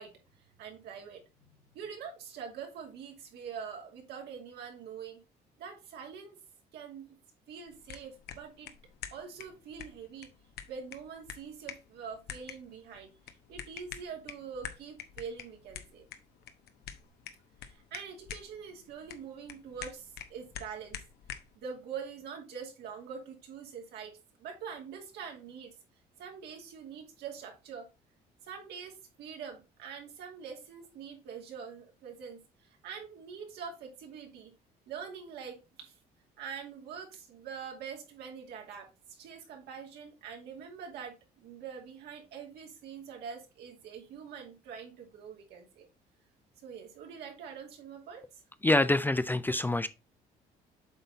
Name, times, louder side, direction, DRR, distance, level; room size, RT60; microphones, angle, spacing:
voice 1, 0.0-5.2 5.6-6.4 6.7-7.1 7.5-8.7 9.1-10.3 10.7-13.1 13.5-16.1 17.7-21.0 21.6-25.7 26.2-27.9 28.4-34.5 34.9-35.9 36.4-45.9 46.6-48.4, right 6 dB, 75° right, 2.4 m, -44 dB
sound 1, 7.7-21.6, left 9 dB, 70° left, 1.0 m, -47 dB
voice 2, 48.6-49.9, left 2 dB, 10° left, 0.4 m, -26 dB
7.9 x 4.0 x 4.0 m
cardioid pair, 110°, 17 cm